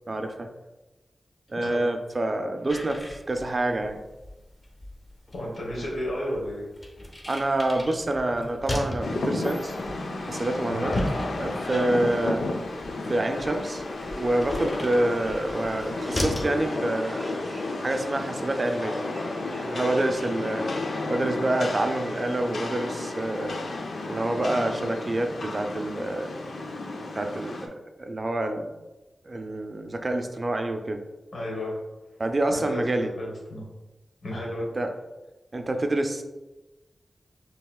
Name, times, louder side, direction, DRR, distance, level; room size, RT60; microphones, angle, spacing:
voice 1, 0.1-0.5 1.5-4.0 7.3-9.8 10.2-11.0 11.4-12.5 13.1-13.8 14.1-17.4 17.8-19.0 19.6-20.7 21.1-23.6 24.1-26.3 27.1-27.7 28.0-28.7 29.2-31.0 32.2-33.1 34.7-34.9 35.5-36.2, right 1 dB, 35° right, 6 dB, 0.4 m, -27 dB
voice 2, 1.6-1.9 5.3-6.7 10.7-10.9 31.3-31.8 32.5-33.7 34.2-34.7, left 1 dB, 70° left, -4 dB, 1.0 m, -33 dB
sound 1, 2.7-16.6, left 1 dB, 25° left, 0.7 m, -37 dB
Rain, 9.0-27.7, left 2 dB, 85° left, 0.5 m, -32 dB
sound 2, 13.0-20.7, right 1 dB, 15° right, 0.9 m, -48 dB
5.4 x 2.8 x 2.3 m, 1.1 s
wide cardioid pair, 95°, 0 cm